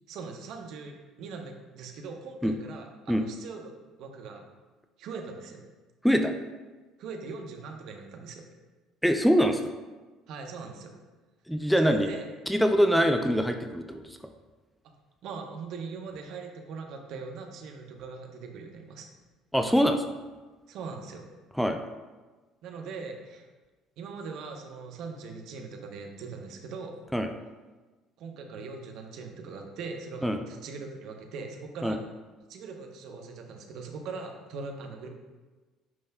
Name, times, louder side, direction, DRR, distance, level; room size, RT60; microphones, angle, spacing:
voice 1, 0.1-3.7 4.0-4.4 5.0-5.6 7.0-8.4 10.3-10.9 11.8-12.2 15.2-19.1 20.7-21.2 22.6-23.5 24.0-26.9 28.2-32.0 32.5-35.1, right 4 dB, 60° right, 3 dB, 0.9 m, -40 dB
voice 2, 9.0-9.7 11.5-12.1 12.5-14.0 19.5-20.0 21.6-21.8 27.1-27.3 30.2-30.4 31.8-32.0, equal, ahead, 6 dB, 0.5 m, -23 dB
9.5 x 5.4 x 2.3 m, 1.3 s
figure-of-eight pair, 55°, 0 cm